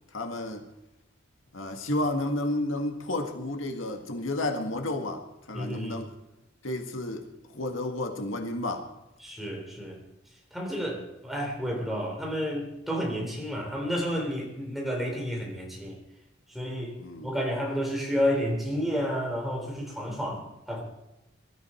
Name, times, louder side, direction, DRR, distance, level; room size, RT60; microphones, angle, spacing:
voice 1, 0.1-0.6 1.5-6.1 6.6-7.2 7.5-8.9 10.9-11.0 17.0-17.3, left 1 dB, 90° left, 1.8 m, -31 dB
voice 2, 5.5-5.9 9.2-10.0 10.5-16.0 16.5-16.9 17.2-20.8, equal, ahead, 3.7 m, -31 dB
21.5 x 13.5 x 4.4 m
head